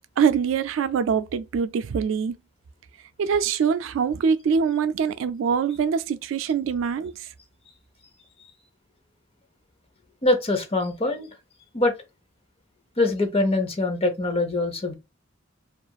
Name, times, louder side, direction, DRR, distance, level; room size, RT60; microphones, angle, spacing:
voice 1, 0.2-2.4 3.2-7.1, right 6 dB, 80° right, 0.3 m, -24 dB
voice 2, 10.2-11.3 11.7-11.9 13.0-14.9, left 2 dB, 30° left, 0.7 m, -23 dB
2.8 x 2.4 x 2.3 m
head